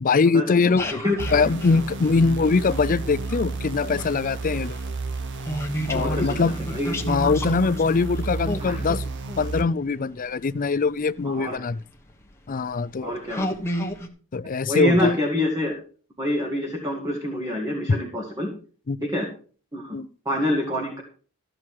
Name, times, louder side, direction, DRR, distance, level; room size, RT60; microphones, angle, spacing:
voice 1, 0.0-0.9 1.3-4.8 5.9-6.5 7.0-9.1 9.4-11.8 12.5-13.1 14.3-15.2 18.9-19.0 19.9-20.1, left 4 dB, 40° left, 0.4 m, -22 dB
sound 1, 0.6-3.4 3.7-10.5 11.4-11.5 12.1-12.3 12.8-12.9 13.3-14.1, equal, 10° left, 1.4 m, -31 dB
sound 2, 1.2-9.6, right 3 dB, 55° right, 0.8 m, -32 dB
voice 2, 5.9-6.9 8.6-8.8 11.3-11.6 13.0-13.5 14.7-15.7 16.2-18.5 19.0-19.3 19.7-20.0 20.3-21.0, left 1 dB, 15° right, 1.9 m, -26 dB
14.0 x 7.7 x 4.8 m
head